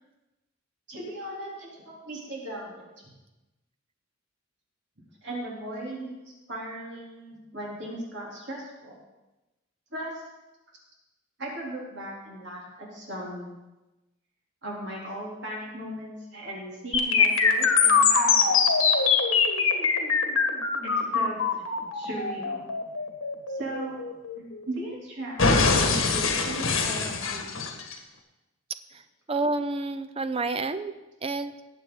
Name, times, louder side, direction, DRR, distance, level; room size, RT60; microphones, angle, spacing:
voice 1, 0.9-2.9 5.2-6.1 6.5-8.9 9.9-10.2 11.4-13.5 14.6-18.6 20.8-21.4 21.9-22.7 23.5-24.0 24.4-25.5 25.7-27.5, right 1 dB, 60° right, -4 dB, 3.2 m, -37 dB
sound 1, 16.9-24.9 25.4-27.9, left 5 dB, 80° left, 1.5 m, -23 dB
voice 2, 29.3-30.9 31.2-31.5, right 3 dB, 30° right, 11 dB, 0.5 m, -29 dB
19.5 x 7.6 x 3.8 m, 1.0 s
head